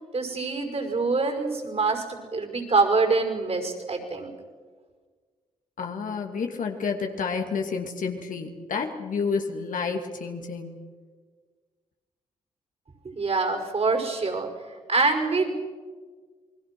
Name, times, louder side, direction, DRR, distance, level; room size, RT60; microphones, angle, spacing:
voice 1, 0.1-4.3 13.0-14.5 14.9-15.5, right 4 dB, 45° right, 5 dB, 5.7 m, -25 dB
voice 2, 5.8-10.8, left 5 dB, 65° left, 4 dB, 2.6 m, -30 dB
28.5 x 21.0 x 6.2 m, 1.5 s
supercardioid pair, 45°, 15 cm